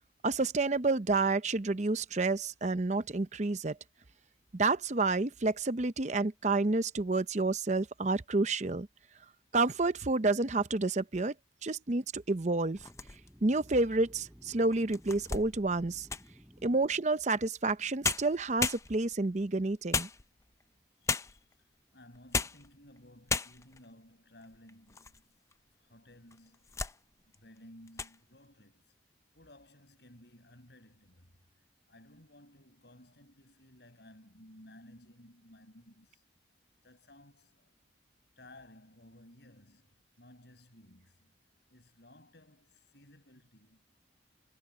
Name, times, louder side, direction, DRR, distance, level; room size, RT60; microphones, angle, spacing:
voice 1, 0.2-3.8 4.5-8.9 9.5-11.3 11.6-12.8 13.4-16.1 16.6-20.1, right 3 dB, 40° right, 0.7 m, -29 dB
sound 1, 12.2-16.7, equal, 10° right, 6.3 m, -57 dB
sound 2, 12.7-13.5 14.1-14.2 14.7-16.4 17.7-17.8 18.0-19.2 19.9-20.6 21.1-21.5 22.1-22.7 23.0-23.1 23.3-23.8 24.4-25.2 25.5-25.6 26.3-27.0 27.3-27.6 27.9-28.2, left 4 dB, 15° left, 0.5 m, -35 dB
voice 2, 21.0-25.4 25.8-26.9 27.1-29.0 29.3-31.3 31.9-36.2 36.8-37.7 38.4-41.3 41.7-43.8, left 1 dB, 60° left, 5.5 m, -57 dB
head